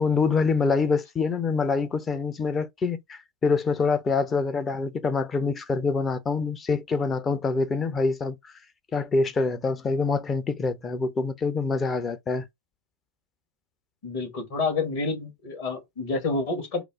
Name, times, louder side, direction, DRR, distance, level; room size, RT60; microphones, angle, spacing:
voice 1, 0.0-8.4 8.9-12.5, left 4 dB, 20° left, 0.6 m, -25 dB
voice 2, 14.0-16.8, left 3 dB, 45° left, 1.6 m, -28 dB
4.7 x 2.0 x 3.7 m
figure-of-eight pair, 90°, 0 cm